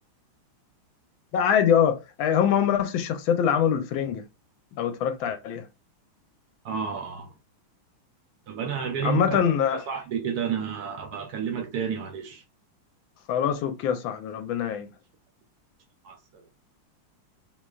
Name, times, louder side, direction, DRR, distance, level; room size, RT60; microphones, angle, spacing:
voice 1, 1.3-4.2 4.8-5.7 9.0-9.8 13.3-14.9, left 8 dB, 75° left, 1.3 m, -24 dB
voice 2, 6.6-7.3 8.5-9.4 9.7-12.4 16.0-16.4, right 7 dB, 70° right, 0.9 m, -31 dB
3.8 x 3.1 x 2.3 m
omnidirectional pair, 2.3 m